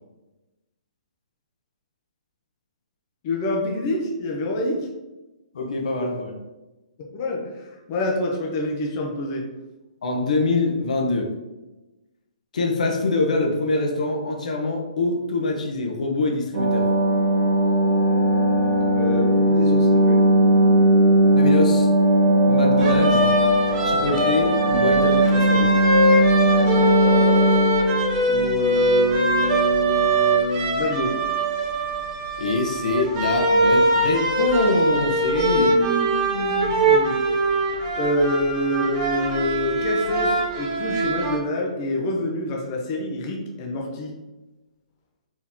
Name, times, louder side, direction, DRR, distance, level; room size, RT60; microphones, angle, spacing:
voice 1, 3.2-4.9 7.0-9.4 18.9-20.2 26.7-27.6 28.3-31.1 35.5-37.2 38.0-44.1, left 1 dB, 25° left, 0 dB, 0.6 m, -27 dB
voice 2, 5.5-6.3 10.0-11.3 12.5-16.9 21.3-21.9 22.5-23.3 23.8-25.7 32.4-35.8, left 2 dB, 65° left, 1 dB, 0.8 m, -24 dB
sound 1, 16.5-29.6 29.9-30.0, right 1 dB, 45° right, 1.0 m, -19 dB
sound 2, 22.8-41.4, right 1 dB, 20° right, 0.7 m, -22 dB
4.6 x 3.0 x 3.5 m, 1.1 s
hypercardioid pair, 170°, 4 cm